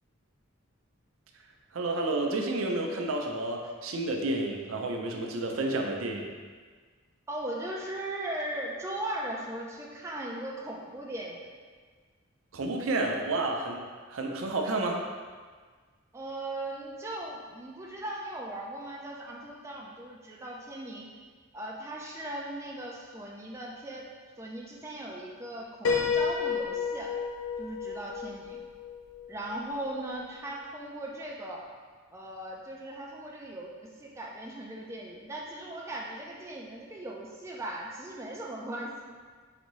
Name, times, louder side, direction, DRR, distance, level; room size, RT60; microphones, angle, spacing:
voice 1, 1.7-6.3 12.5-13.8 14.1-15.0, right 2 dB, 75° right, 2 dB, 0.5 m, -30 dB
voice 2, 7.3-11.5 16.1-21.1 21.5-24.1 24.4-27.1 27.6-28.6 29.3-31.6 32.1-39.0, right 1 dB, 15° right, -3 dB, 0.3 m, -38 dB
Piano, 25.8-29.6, left 6 dB, 80° left, 0.5 m, -31 dB
4.9 x 2.6 x 3.0 m, 1.5 s
head